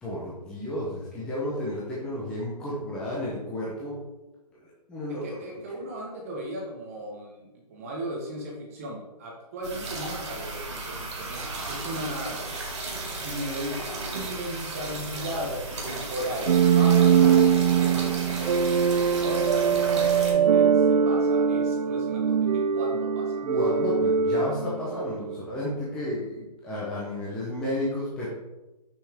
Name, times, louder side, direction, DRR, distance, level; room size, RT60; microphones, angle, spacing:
voice 1, 0.0-4.0 4.6-5.5 23.4-28.3, left 1 dB, 5° left, -7 dB, 0.7 m, -32 dB
voice 2, 5.2-12.6 13.2-13.8 14.1-18.9 19.2-23.3, equal, 20° right, -1 dB, 1.0 m, -36 dB
sound 1, 9.6-20.3, right 2 dB, 40° right, 2.2 m, -35 dB
sound 2, 16.5-25.4, right 7 dB, 70° right, 0.4 m, -22 dB
7.6 x 5.7 x 3.5 m, 1.0 s
hypercardioid pair, 165°, 21 cm